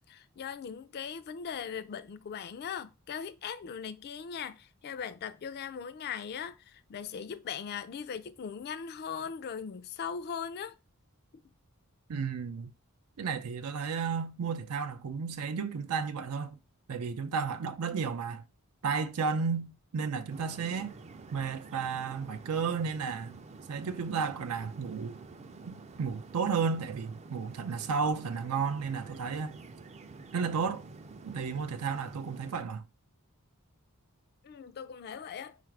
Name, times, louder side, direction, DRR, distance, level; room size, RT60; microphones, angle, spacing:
voice 1, 0.1-10.8 34.4-35.6, left 7 dB, 50° left, 0.4 m, -39 dB
voice 2, 12.1-12.7 13.2-16.6 16.9-18.5 18.8-20.9 21.3-23.3 23.7-25.2 25.7-29.6 30.3-30.8 31.2-32.8, right 5 dB, 90° right, 0.5 m, -33 dB
sound 1, 20.3-32.6, right 3 dB, 30° right, 0.4 m, -49 dB
4.7 x 2.5 x 4.5 m
head